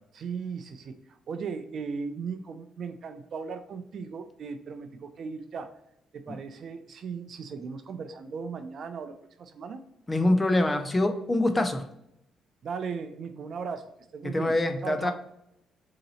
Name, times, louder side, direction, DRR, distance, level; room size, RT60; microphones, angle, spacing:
voice 1, 0.1-5.7 6.1-9.8 12.6-14.6 14.8-15.1, right 5 dB, 60° right, 9 dB, 0.4 m, -37 dB
voice 2, 10.1-11.9 14.2-15.1, left 1 dB, 20° left, 6 dB, 0.5 m, -25 dB
3.8 x 2.9 x 4.1 m, 0.78 s
cardioid pair, 90°, 0 cm